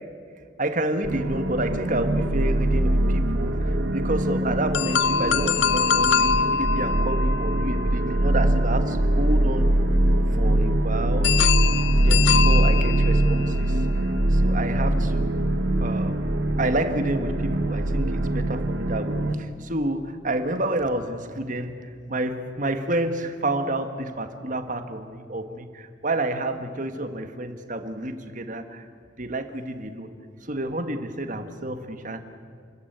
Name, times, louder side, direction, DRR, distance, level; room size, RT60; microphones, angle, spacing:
voice 1, 0.6-9.7 10.3-11.4 12.0-13.9 14.3-15.4 15.8-16.3 16.6-28.8 29.2-30.1 30.4-32.2, right 1 dB, 40° right, 8 dB, 1.6 m, -29 dB
sound 1, 1.0-19.4, right 1 dB, 65° right, 1.3 m, -23 dB
sound 2, 4.7-8.8 11.2-13.6, left 7 dB, 65° left, 0.5 m, -24 dB
29.5 x 14.5 x 9.4 m, 2.3 s
head